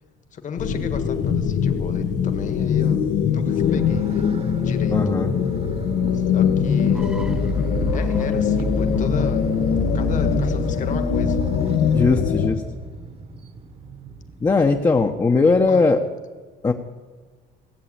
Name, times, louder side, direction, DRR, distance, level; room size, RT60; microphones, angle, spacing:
voice 1, 0.3-4.3 4.6-5.1 6.1-7.1 7.9-9.5 9.9-11.4 15.7-15.8, left 6 dB, 50° left, 7 dB, 1.7 m, -34 dB
sound 1, 0.6-12.5, left 7 dB, 85° left, 1.5 m, -22 dB
Motorcycle, 3.5-15.7, right 4 dB, 35° right, 1.4 m, -37 dB
voice 2, 4.9-5.3 11.9-12.6 14.4-16.0 16.6-16.7, left 4 dB, 20° left, 2 dB, 1.0 m, -19 dB
sound 2, 6.9-12.8, equal, 5° right, 0.8 m, -29 dB
17.0 x 7.8 x 8.8 m, 1.4 s
cardioid pair, 110°, 17 cm